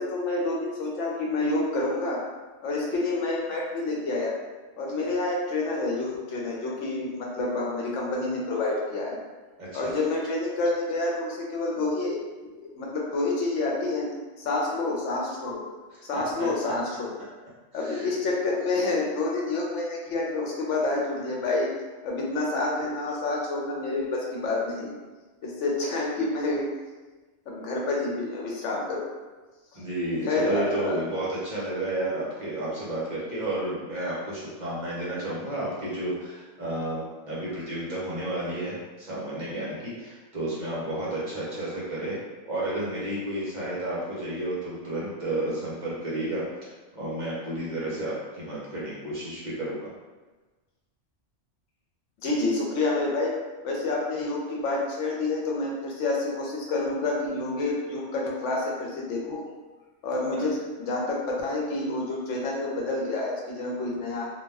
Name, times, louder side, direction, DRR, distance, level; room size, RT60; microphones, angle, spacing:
voice 1, 0.0-2.2 2.6-4.4 4.8-9.2 9.7-12.2 12.5-14.1 14.4-15.7 16.0-17.2 17.7-21.7 22.0-24.9 25.4-26.7 27.5-29.1 29.7-29.8 30.2-31.0 52.2-53.3 53.6-59.4 60.0-64.3, left 2 dB, 75° left, -2 dB, 1.0 m, -28 dB
voice 2, 9.6-9.9 16.1-16.7 17.7-18.1 29.7-42.2 42.4-49.9 60.3-60.4, right 1 dB, 45° right, -7 dB, 0.7 m, -32 dB
2.4 x 2.1 x 3.3 m, 1.3 s
omnidirectional pair, 1.3 m